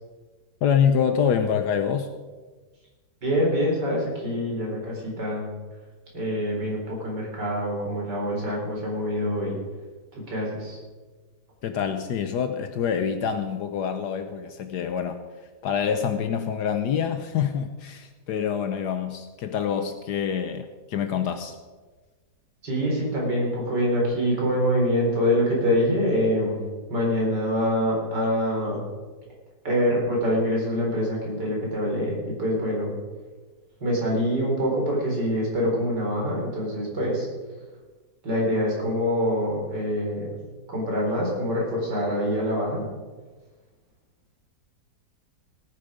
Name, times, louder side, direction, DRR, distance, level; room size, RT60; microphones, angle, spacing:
voice 1, 0.6-2.1 11.6-15.2 15.6-21.5, left 7 dB, 75° left, 8 dB, 1.3 m, -26 dB
voice 2, 3.2-5.5 6.1-9.6 10.1-10.8 22.6-26.6 26.9-28.8 29.6-32.9 33.8-37.3 38.2-40.4 40.7-42.9, equal, 75° right, -2 dB, 4.7 m, -25 dB
18.0 x 9.9 x 5.1 m, 1.3 s
omnidirectional pair, 1.9 m